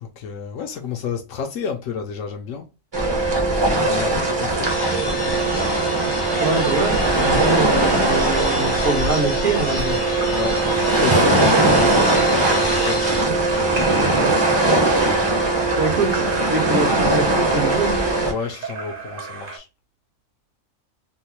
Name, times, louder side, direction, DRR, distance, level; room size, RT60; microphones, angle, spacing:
voice 1, 0.0-2.7 3.5-5.5 10.3-13.4 15.1-15.4 18.3-19.7, left 6 dB, 80° left, 0.9 m, -31 dB
sound 1, 2.9-18.3, right 2 dB, 25° right, 0.7 m, -20 dB
sound 2, 4.6-13.2, left 2 dB, 35° left, 0.5 m, -32 dB
voice 2, 6.4-10.0 13.2-13.3 14.2-14.3 15.7-18.0, right 3 dB, 70° right, 1.5 m, -24 dB
Splash splatter / Drip / Trickle dribble, 9.5-19.6, right 2 dB, 45° right, 1.0 m, -34 dB
3.7 x 2.1 x 2.8 m
omnidirectional pair, 1.3 m